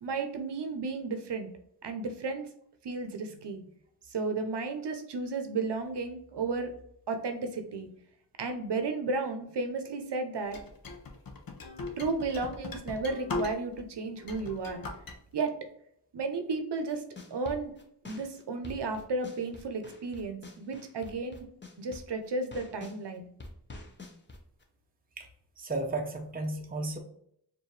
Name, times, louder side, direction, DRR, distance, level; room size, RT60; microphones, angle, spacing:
voice 1, 0.0-1.5 1.8-2.5 2.8-3.7 4.1-6.7 7.1-7.9 8.4-10.6 12.0-14.8 15.3-15.5 16.1-17.0 17.3-17.7 18.1-21.5 21.8-23.3, right 3 dB, 70° right, 7 dB, 0.7 m, -33 dB
sound 1, 10.5-13.8 14.2-15.2, left 3 dB, 55° left, 0.7 m, -39 dB
sound 2, 16.9-23.0 23.4-24.6, left 2 dB, 25° left, 0.7 m, -47 dB
voice 2, 25.6-27.0, right 2 dB, 20° right, 3 dB, 0.6 m, -33 dB
4.6 x 2.7 x 3.1 m, 0.71 s
wide cardioid pair, 125°, 42 cm